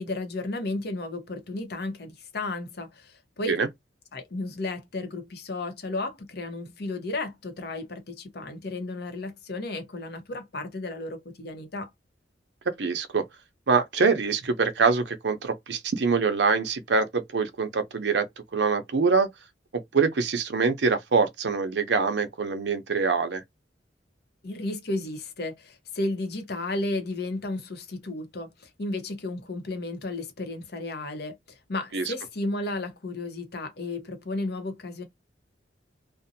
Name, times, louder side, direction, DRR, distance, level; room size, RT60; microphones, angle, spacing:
voice 1, 0.0-3.6 4.1-11.9 24.4-35.0, left 2 dB, 60° left, 0.8 m, -33 dB
voice 2, 12.7-13.2 13.7-18.3 18.5-19.3 19.7-23.4 31.9-32.1, right 4 dB, 70° right, 0.6 m, -24 dB
2.6 x 2.1 x 2.6 m
head